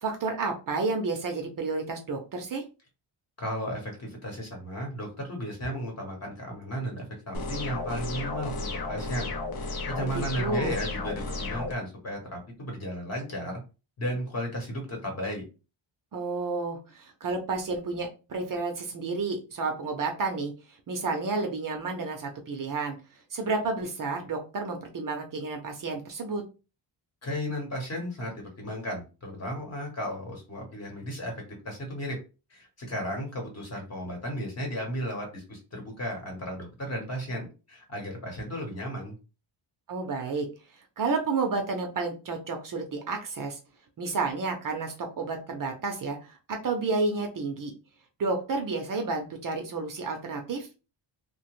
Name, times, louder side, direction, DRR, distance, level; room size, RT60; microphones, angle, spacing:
voice 1, 0.0-2.6 10.0-10.8 16.1-20.5 20.9-23.0 23.3-26.4 39.9-40.5 41.0-43.6 44.0-47.7 48.2-50.7, right 3 dB, 45° right, 3 dB, 0.6 m, -31 dB
voice 2, 3.4-9.3 9.6-13.6 14.0-15.4 27.2-32.2 32.5-39.2, equal, 35° left, 1 dB, 1.0 m, -34 dB
sound 1, 7.3-11.7, left 3 dB, 50° left, 0.6 m, -33 dB
2.9 x 2.1 x 3.0 m, 0.31 s
wide cardioid pair, 170°, 47 cm